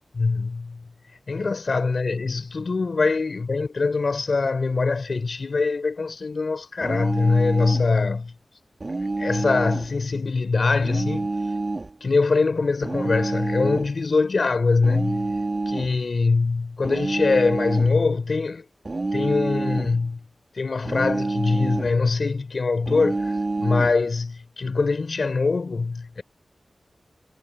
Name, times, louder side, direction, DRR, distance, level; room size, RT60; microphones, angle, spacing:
voice 1, 0.1-0.8 1.3-8.3 9.2-11.3 12.0-15.4 15.7-18.6 19.1-20.2 20.5-26.2, left 4 dB, 65° left, 4.3 m, -23 dB
sound 1, 6.8-7.9 8.8-9.9 10.8-11.9 12.8-13.9 14.8-16.0 16.8-18.0 18.8-20.0 20.8-22.0 22.9-24.0, right 2 dB, 45° right, 2.5 m, -27 dB
wide cardioid pair, 80°, 0 cm